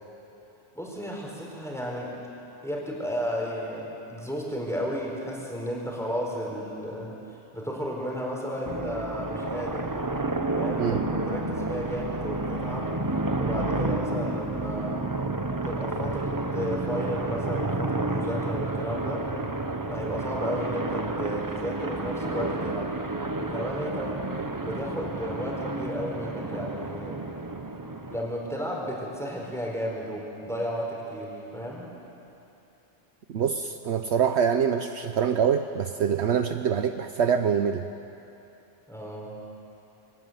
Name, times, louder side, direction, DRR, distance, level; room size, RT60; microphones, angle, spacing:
voice 1, 0.7-2.2 2.6-9.9 10.5-12.9 13.4-15.0 15.6-19.3 19.9-23.0 23.4-24.2 24.6-27.2 28.1-31.9 38.9-39.3, equal, ahead, -2 dB, 4.5 m, -33 dB
sound 1, 8.6-28.2, right 2 dB, 20° right, 0.8 m, -30 dB
voice 2, 33.3-37.9, right 7 dB, 65° right, 8 dB, 1.0 m, -25 dB
22.5 x 17.5 x 9.4 m, 2.9 s
omnidirectional pair, 1.3 m